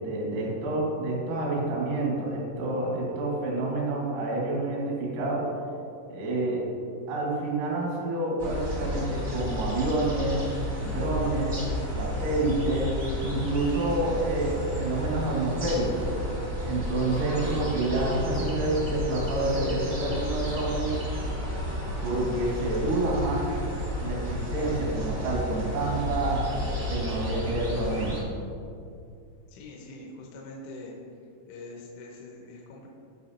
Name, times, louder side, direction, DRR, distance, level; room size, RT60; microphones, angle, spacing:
voice 1, 0.0-5.6 6.1-6.7 7.1-10.5 10.8-16.1 16.6-21.0 22.0-23.5 24.0-28.3, right 2 dB, 85° right, -3 dB, 4.7 m, -28 dB
sound 1, 8.4-28.2, equal, 65° right, 0.8 m, -32 dB
voice 2, 29.5-31.0 31.5-32.9, left 2 dB, 75° left, -2 dB, 3.3 m, -43 dB
16.0 x 5.7 x 2.8 m, 2.4 s
omnidirectional pair, 5.9 m